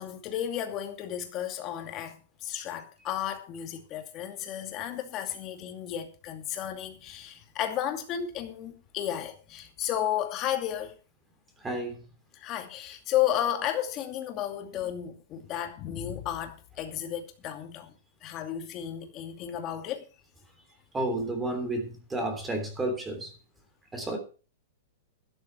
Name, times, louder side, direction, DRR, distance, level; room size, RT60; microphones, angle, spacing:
voice 1, 0.0-10.9 12.3-17.9 18.2-20.0, left 11 dB, 25° left, 2.4 m, -33 dB
voice 2, 11.6-12.0 20.9-23.3 23.9-24.2, right 1 dB, 10° right, 3.2 m, -31 dB
12.5 x 11.5 x 4.5 m
supercardioid pair, 160°, 0 cm